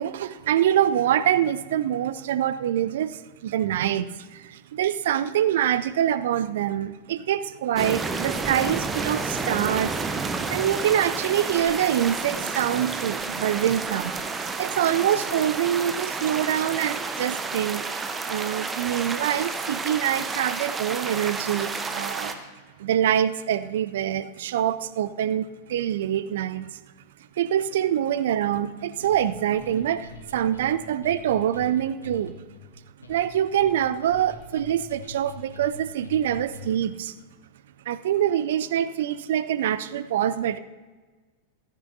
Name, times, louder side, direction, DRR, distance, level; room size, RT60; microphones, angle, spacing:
voice 1, 0.0-10.0 10.5-17.8 18.3-22.4 22.8-26.8 27.4-32.3 33.1-37.1 37.9-40.6, right 10 dB, 55° right, 15 dB, 0.5 m, -25 dB
sound 1, 7.8-22.3, right 4 dB, 15° right, 0.9 m, -30 dB
sound 2, 29.0-36.9, left 4 dB, 75° left, 1.4 m, -44 dB
15.5 x 14.0 x 2.7 m, 1.3 s
figure-of-eight pair, 90°, 0 cm